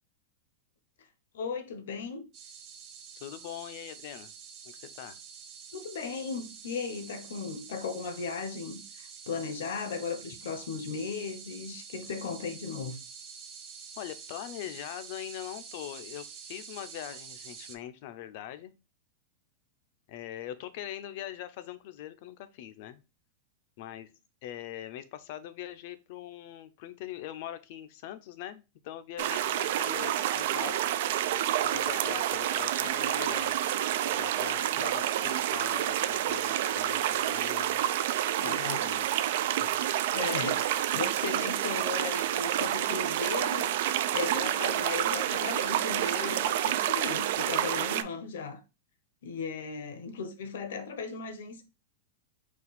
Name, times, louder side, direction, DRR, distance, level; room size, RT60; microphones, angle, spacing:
voice 1, 1.3-2.3 5.7-13.0 34.3-34.9 38.3-38.8 40.1-48.6 49.2-51.6, left 5 dB, 80° left, 0.8 m, -37 dB
sound 1, 2.3-17.8, right 6 dB, 40° right, 0.7 m, -47 dB
voice 2, 3.2-4.3 4.6-5.2 14.0-18.7 20.1-23.0 23.8-24.1 24.4-30.8 31.6-33.8 34.1-37.8 38.3-39.7, left 12 dB, 55° left, 0.5 m, -42 dB
sound 2, 29.2-48.0, right 12 dB, 65° right, 0.3 m, -29 dB
4.3 x 2.3 x 4.0 m
supercardioid pair, 150°, 0 cm